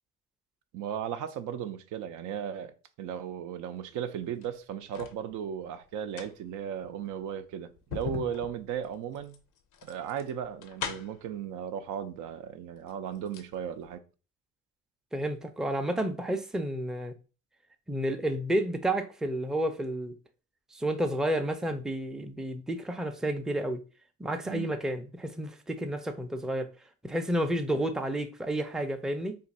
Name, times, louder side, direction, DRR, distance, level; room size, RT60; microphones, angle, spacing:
voice 1, 0.7-9.4 9.8-14.0 24.4-24.7, right 8 dB, 85° right, 0.5 m, -36 dB
sound 1, 4.2-5.2 5.9-11.3 12.3-12.4 12.7-13.5 13.8-13.9, left 8 dB, 90° left, 0.6 m, -41 dB
voice 2, 15.1-17.1 17.9-20.1 20.7-23.8 24.2-26.7 27.0-29.4, right 1 dB, ahead, 0.4 m, -31 dB
2.6 x 2.4 x 4.1 m
cardioid pair, 90°, 30 cm